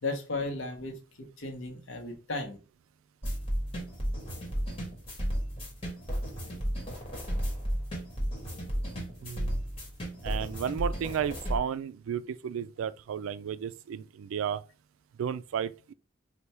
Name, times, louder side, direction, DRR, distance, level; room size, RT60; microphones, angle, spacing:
voice 1, 0.0-2.6, left 3 dB, 75° left, 0.8 m, -35 dB
sound 1, 3.2-11.6, equal, 25° left, 1.3 m, -33 dB
voice 2, 9.2-9.6 10.2-14.6 15.2-15.9, right 8 dB, 90° right, 0.3 m, -33 dB
3.3 x 2.2 x 4.2 m
head